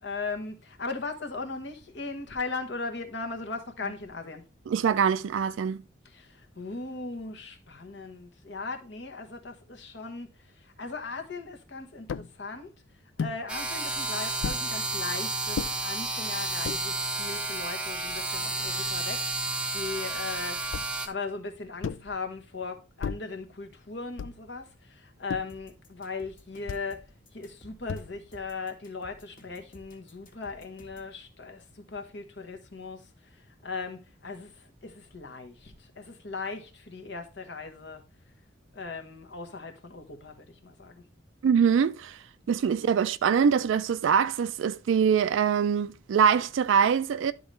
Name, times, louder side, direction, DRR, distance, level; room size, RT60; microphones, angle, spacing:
voice 1, 0.0-4.4 6.0-12.7 13.2-20.7 21.0-38.0 38.7-41.0, left 4 dB, 65° left, 1.2 m, -38 dB
voice 2, 4.7-5.8 41.4-47.3, right 7 dB, 80° right, 0.3 m, -24 dB
sound 1, 12.1-12.3 13.2-13.4 14.4-14.7 15.5-15.7 16.5-16.8 17.6-17.7 17.9-18.9 20.7-21.1 21.8-22.1 23.0-23.3 24.2-24.5 25.3-25.6 26.7-26.9 27.9-28.3, left 6 dB, 90° left, 0.4 m, -35 dB
sound 2, 13.5-21.1, right 2 dB, 5° right, 0.6 m, -31 dB
sound 3, 25.5-31.1, equal, 50° left, 1.5 m, -54 dB
11.5 x 4.0 x 3.2 m
head